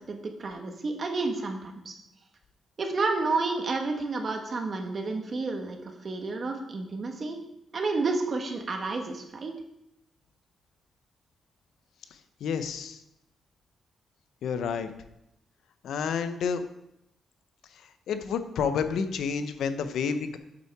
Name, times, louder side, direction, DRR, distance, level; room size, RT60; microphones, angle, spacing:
voice 1, 0.1-2.0 2.8-7.4 7.7-9.5, right 3 dB, 45° right, 4 dB, 1.4 m, -30 dB
voice 2, 12.4-13.0 14.4-14.9 15.8-16.6 18.1-20.4, left 6 dB, 85° left, 10 dB, 0.7 m, -29 dB
8.2 x 5.6 x 4.7 m, 0.83 s
cardioid pair, 95°, 0 cm